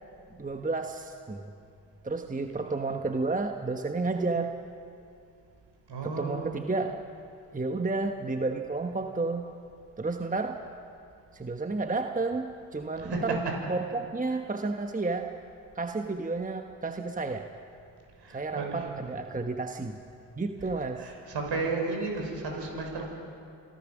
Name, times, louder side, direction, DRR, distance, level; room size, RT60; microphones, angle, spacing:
voice 1, 0.4-1.5 2.0-4.5 6.0-7.0 7.5-9.5 10.0-10.6 11.3-13.4 13.7-15.3 15.7-17.5 18.3-20.0 20.4-21.1, right 3 dB, 15° right, 5 dB, 1.2 m, -31 dB
voice 2, 5.9-6.5 13.0-13.4 18.2-18.8 21.0-23.1, right 3 dB, 55° right, 1 dB, 6.3 m, -33 dB
27.5 x 15.5 x 6.3 m, 2.5 s
hypercardioid pair, 55°, 49 cm